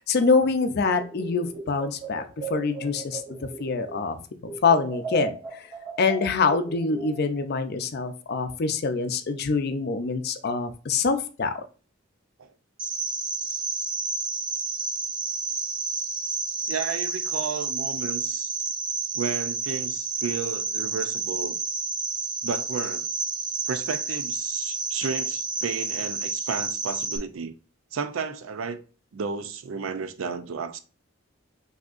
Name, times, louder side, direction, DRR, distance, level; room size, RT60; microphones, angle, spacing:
voice 1, 0.1-2.2 2.5-4.2 4.6-5.4 6.0-11.6, left 4 dB, 55° left, 0.5 m, -25 dB
sound 1, 0.9-4.1 4.4-7.4, right 4 dB, 50° right, 2.3 m, -37 dB
Cricket, 12.8-27.2, right 4 dB, 25° right, 0.5 m, -30 dB
voice 2, 16.7-18.5 19.1-21.6 22.4-23.1 23.7-27.6 27.9-28.8 29.1-30.8, right 5 dB, 90° right, 0.5 m, -32 dB
6.0 x 2.8 x 2.4 m
head